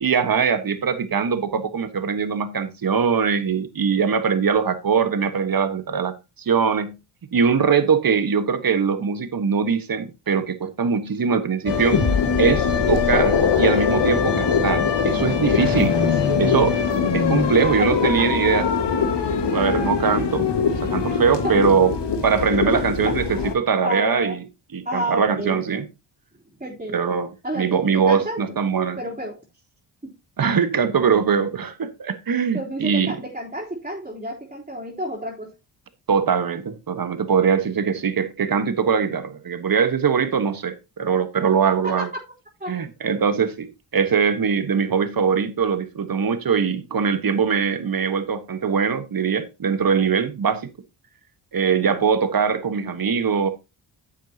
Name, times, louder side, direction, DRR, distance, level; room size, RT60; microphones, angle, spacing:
voice 1, 0.0-7.0 7.3-12.0 12.4-16.0 16.4-16.7 17.1-18.7 19.5-20.5 20.8-22.0 22.2-24.5 24.7-25.9 26.9-29.0 30.4-33.2 36.1-42.1 42.7-50.7 51.5-53.5, right 6 dB, 45° right, 1.4 m, -22 dB
sound 1, 11.7-23.5, left 6 dB, 55° left, 1.7 m, -21 dB
voice 2, 17.8-18.4 21.1-21.2 21.4-21.7 22.6-23.2 23.8-24.4 24.8-25.7 26.6-27.0 27.4-28.6 29.0-29.4 30.0-30.1 32.5-35.5 41.8-42.1 42.6-42.8 51.8-52.0, right 1 dB, 15° right, 3.6 m, -30 dB
11.0 x 7.3 x 2.8 m
cardioid pair, 55°, 49 cm